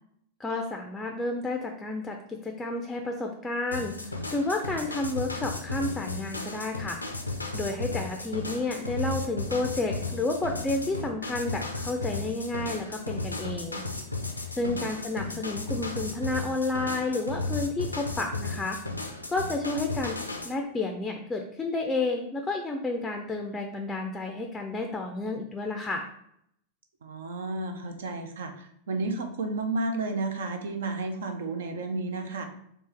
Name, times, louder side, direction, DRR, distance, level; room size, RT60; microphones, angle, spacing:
voice 1, 0.4-7.0 7.5-13.8 14.5-18.8 19.3-20.2 20.4-26.0, left 2 dB, 10° left, 3 dB, 0.4 m, -31 dB
sound 1, 3.7-20.5, left 3 dB, 85° left, 0.5 m, -34 dB
voice 2, 14.6-14.9 27.0-32.5, right 3 dB, 65° right, 6 dB, 0.5 m, -32 dB
4.4 x 3.0 x 3.3 m, 0.73 s
figure-of-eight pair, 90°, 0 cm